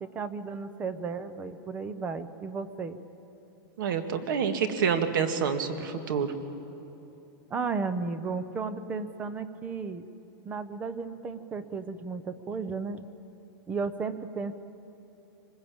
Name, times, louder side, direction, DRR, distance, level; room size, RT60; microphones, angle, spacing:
voice 1, 0.0-3.0 7.5-10.0 10.5-13.1 13.7-14.6, right 4 dB, 10° right, 13 dB, 0.6 m, -34 dB
voice 2, 3.8-6.3, right 6 dB, 55° right, 8 dB, 2.0 m, -27 dB
25.5 x 20.5 x 8.7 m, 2.9 s
supercardioid pair, 175°, 13 cm